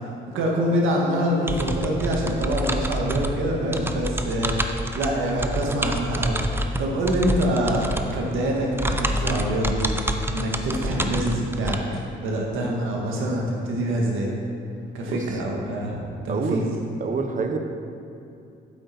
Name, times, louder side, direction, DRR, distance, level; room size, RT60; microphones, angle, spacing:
voice 1, 0.3-4.5 4.9-9.9 10.3-14.3 14.9-16.0 16.2-16.6, right 1 dB, 85° right, -1 dB, 1.7 m, -25 dB
sound 1, 1.5-11.8, equal, 10° right, 0.6 m, -28 dB
voice 2, 15.1-15.4 16.3-17.6, right 4 dB, 40° right, 5 dB, 0.9 m, -27 dB
8.4 x 7.7 x 4.3 m, 2.6 s
cardioid pair, 90°, 20 cm